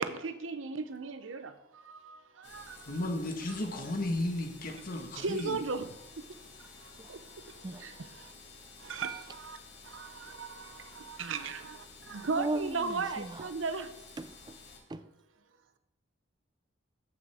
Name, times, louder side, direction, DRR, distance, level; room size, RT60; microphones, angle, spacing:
voice 1, 0.0-3.0 3.5-3.6 5.2-6.3 6.6-8.3 8.8-9.6 9.8-13.9, right 4 dB, 85° right, 0.7 m, -37 dB
sound 1, 2.4-14.8, left 4 dB, 65° left, 2.3 m, -53 dB
voice 2, 2.9-5.6, left 1 dB, 50° left, 1.4 m, -34 dB
voice 3, 12.3-13.5 14.2-14.6 14.9-15.1, right 2 dB, 20° right, 0.4 m, -37 dB
13.5 x 6.1 x 3.5 m
head